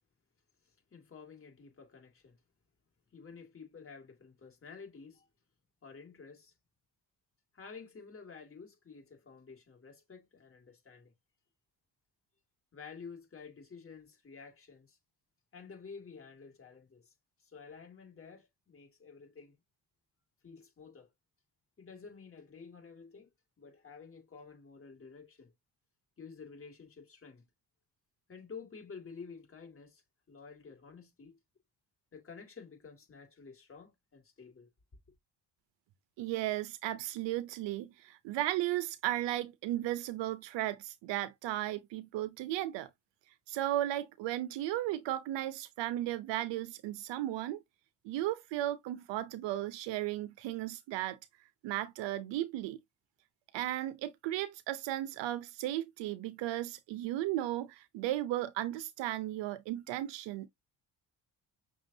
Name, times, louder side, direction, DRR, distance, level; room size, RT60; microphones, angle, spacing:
voice 1, 0.9-2.4 3.1-5.3 5.8-6.5 7.5-11.1 12.7-15.0 15.5-17.1 17.4-19.6 20.4-21.1 21.8-23.3 23.6-25.5 26.2-27.5 28.3-31.4 32.1-34.7, left 5 dB, 30° left, 2.3 m, -51 dB
voice 2, 36.2-42.9 43.5-47.6 48.0-51.2 51.6-52.8 53.5-60.5, right 14 dB, 85° right, 0.6 m, -35 dB
6.0 x 2.5 x 2.7 m
cardioid pair, 75°, 43 cm